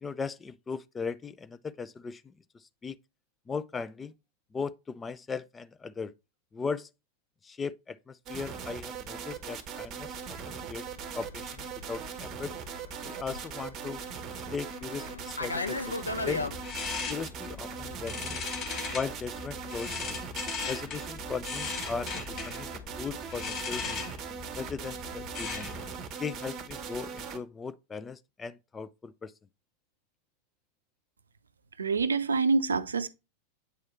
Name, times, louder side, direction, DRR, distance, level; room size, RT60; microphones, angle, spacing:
voice 1, 0.0-2.2 2.8-3.0 3.5-4.1 4.5-6.1 6.5-6.9 7.4-10.9 11.1-12.5 13.0-14.0 14.5-16.4 17.1-18.4 18.9-20.2 20.7-22.7 23.0-24.0 24.5-25.7 26.2-29.3, left 5 dB, 15° left, 0.3 m, -38 dB
sound 1, 8.3-27.4, right 6 dB, 30° right, 0.9 m, -40 dB
Fixed-wing aircraft airplane, 10.0-16.6, left 3 dB, 80° left, 0.7 m, -38 dB
sound 2, 16.2-25.9, left 5 dB, 30° left, 1.3 m, -38 dB
voice 2, 31.8-33.1, right 4 dB, 75° right, 0.5 m, -26 dB
8.1 x 4.7 x 3.0 m
figure-of-eight pair, 90°, 0 cm